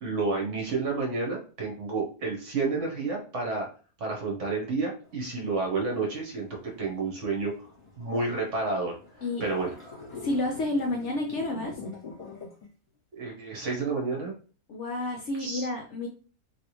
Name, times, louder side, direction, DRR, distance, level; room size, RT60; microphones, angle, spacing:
voice 1, 0.0-3.7 4.0-6.5 6.8-7.7 8.0-8.9 9.4-9.7 13.1-14.3 15.4-15.7, right 3 dB, 55° right, -1 dB, 1.2 m, -30 dB
sound 1, 5.0-12.7, left 4 dB, 20° left, 1.6 m, -46 dB
voice 2, 10.2-11.8 14.7-16.1, left 2 dB, 65° left, 1 dB, 0.7 m, -30 dB
3.3 x 2.7 x 2.9 m, 0.37 s
omnidirectional pair, 1.6 m